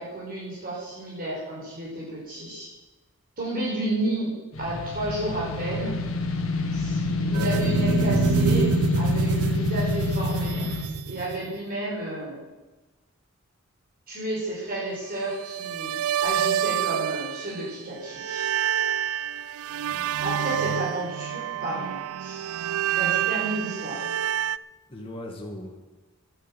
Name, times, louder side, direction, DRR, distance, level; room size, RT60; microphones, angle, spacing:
voice 1, 0.0-2.7 3.4-4.3 4.6-5.9 6.7-7.0 7.3-12.4 14.1-18.4 20.2-22.5 22.9-24.0, right 1 dB, 40° right, -6 dB, 5.5 m, -31 dB
sound 1, 4.5-10.9, left 2 dB, 70° left, 1.7 m, -26 dB
sound 2, 7.3-11.6 15.4-17.8 18.1-24.6, right 8 dB, 80° right, 0.4 m, -28 dB
voice 2, 19.9-20.8 24.9-25.7, left 1 dB, 25° left, -1 dB, 2.0 m, -39 dB
12.0 x 9.3 x 9.2 m, 1.1 s
head